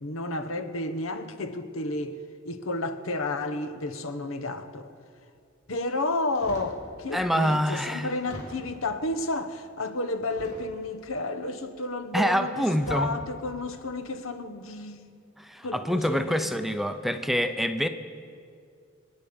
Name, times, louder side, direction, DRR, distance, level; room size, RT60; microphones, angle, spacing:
voice 1, 0.0-2.2 2.4-4.9 5.7-15.2 15.6-16.5, left 2 dB, 80° left, 1.1 m, -31 dB
sound 1, 6.3-6.8 7.5-7.6 8.2-8.9 10.3-11.0 12.1-12.3 12.7-13.2 13.9-14.1, equal, 40° left, 4.0 m, -42 dB
voice 2, 7.1-8.1 12.1-13.1 15.4-17.9, equal, ahead, 0.6 m, -26 dB
27.5 x 9.8 x 5.2 m
head